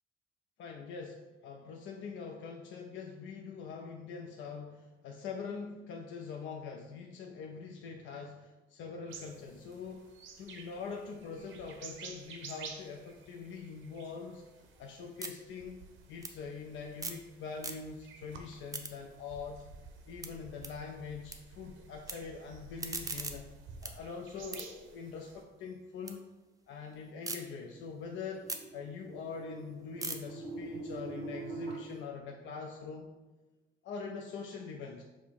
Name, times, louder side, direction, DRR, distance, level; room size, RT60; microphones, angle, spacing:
voice 1, 0.6-10.1 10.4-14.4 14.8-15.8 16.1-19.6 20.1-23.5 23.8-26.3 26.7-33.1 33.8-35.0, left 5 dB, 75° left, 2 dB, 0.4 m, -43 dB
sound 1, 9.1-25.4, right 5 dB, 75° right, 0.6 m, -52 dB
sound 2, 14.3-17.3 17.5-18.2 18.5-21.4 21.7-22.1 22.6-26.2 26.5-27.4 27.8-32.0, right 3 dB, 15° right, 0.5 m, -44 dB
sound 3, 27.0-31.8, right 3 dB, 20° left, 1.5 m, -44 dB
5.3 x 2.0 x 4.6 m, 1.1 s
cardioid pair, 90°, 20 cm